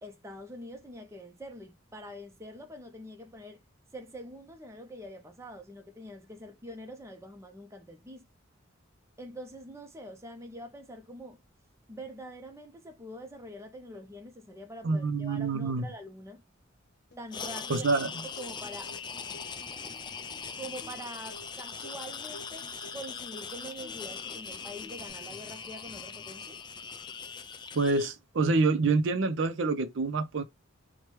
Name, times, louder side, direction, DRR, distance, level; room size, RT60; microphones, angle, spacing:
voice 1, 0.0-3.6 3.9-8.3 9.2-11.4 11.9-16.4 17.2-17.9 18.2-18.9 20.6-26.6, equal, 15° right, 0.6 m, -45 dB
voice 2, 14.8-15.9 17.7-18.1 27.7-30.4, right 3 dB, 65° right, 0.5 m, -27 dB
Acoustic guitar, 17.1-25.1, left 2 dB, 55° left, 1.1 m, -53 dB
sound 1, 17.3-28.1, left 6 dB, 25° left, 0.4 m, -41 dB
4.5 x 2.2 x 3.1 m
head